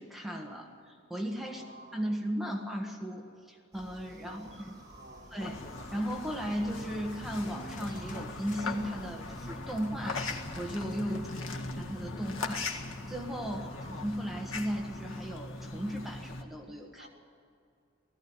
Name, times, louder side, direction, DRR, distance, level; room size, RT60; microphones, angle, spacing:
voice 1, 0.0-1.6 1.9-4.5 5.3-5.6 5.9-12.8 13.1-17.1, equal, ahead, 0 dB, 1.6 m, -36 dB
voice 2, 1.5-2.1 4.1-5.4 11.1-11.8 13.5-14.1 16.9-17.1, right 1 dB, 50° right, -1 dB, 4.4 m, -53 dB
sound 1, 3.7-9.6, right 1 dB, 20° right, 5.1 m, -53 dB
sound 2, 5.4-16.4, left 3 dB, 90° left, 1.7 m, -40 dB
sound 3, 5.5-11.4, left 3 dB, 40° left, 0.9 m, -53 dB
18.5 x 15.0 x 9.5 m, 2.4 s
head